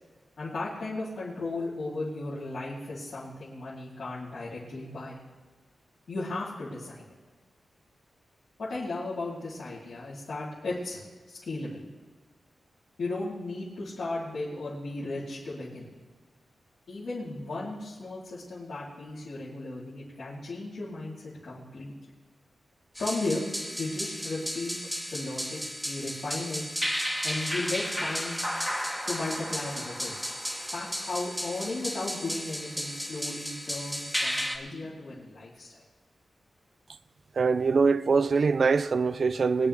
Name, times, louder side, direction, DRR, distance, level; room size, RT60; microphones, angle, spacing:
voice 1, 0.4-5.2 6.1-7.1 8.6-11.0 11.3-11.8 13.0-15.9 16.9-21.1 21.4-22.1 23.0-23.4 23.8-24.8 25.1-25.6 25.8-26.6 27.2-28.4 29.1-30.2 30.7-35.7, left 2 dB, 60° left, 3.2 m, -35 dB
sound 1, 22.9-34.6, equal, ahead, 1.2 m, -33 dB
voice 2, 37.3-39.7, right 4 dB, 50° right, 0.4 m, -23 dB
22.5 x 10.0 x 3.4 m
wide cardioid pair, 165°, 0 cm